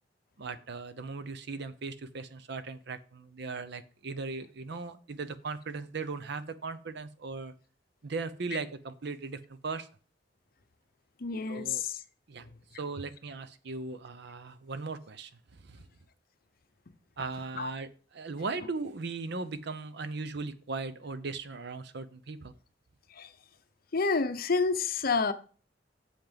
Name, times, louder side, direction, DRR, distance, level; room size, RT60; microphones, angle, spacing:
voice 1, 0.4-7.5 8.0-9.9 11.5-11.8 12.3-12.5 12.8-15.9 17.2-17.9 18.1-22.5, right 4 dB, 65° right, 0.7 m, -38 dB
voice 2, 11.2-12.0 12.4-12.5 17.5-17.7 23.1-23.3 23.9-25.3, left 4 dB, 50° left, 0.7 m, -29 dB
7.1 x 5.9 x 5.1 m
head